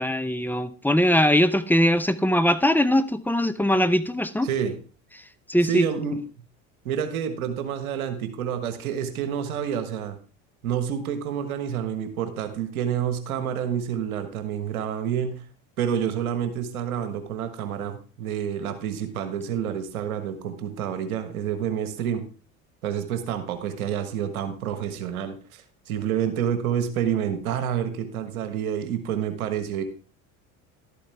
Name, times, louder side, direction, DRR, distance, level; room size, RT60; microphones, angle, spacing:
voice 1, 0.0-4.5 5.5-5.9, equal, 5° left, 11 dB, 0.7 m, -21 dB
voice 2, 4.4-4.7 5.6-6.2 6.8-10.2 10.6-15.4 15.8-22.2 22.8-29.8, right 9 dB, 85° right, 9 dB, 1.5 m, -28 dB
12.0 x 8.5 x 3.4 m, 0.37 s
hypercardioid pair, 80°, 42 cm